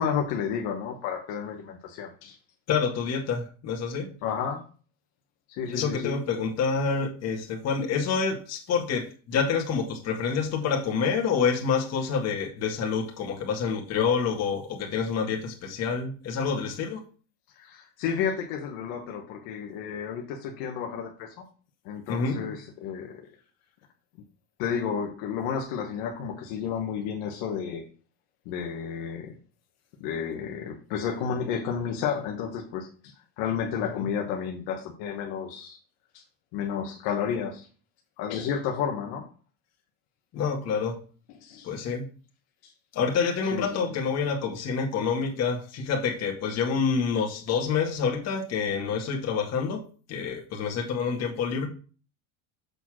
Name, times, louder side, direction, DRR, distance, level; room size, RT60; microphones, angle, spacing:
voice 1, 0.0-2.4 4.2-4.6 5.5-6.2 17.6-21.3 21.8-23.3 24.6-27.9 28.4-29.3 30.0-35.8 36.1-36.2 36.5-37.7 38.2-39.3 41.4-41.7 42.6-42.7 43.5-44.0, left 7 dB, 65° left, 2 dB, 1.2 m, -31 dB
voice 2, 2.7-4.1 5.6-17.0 22.1-22.6 33.9-34.1 40.3-41.0 41.6-42.1 42.9-51.7, left 5 dB, 40° left, 1 dB, 1.9 m, -27 dB
6.8 x 4.2 x 6.2 m, 0.38 s
cardioid pair, 155°, 41 cm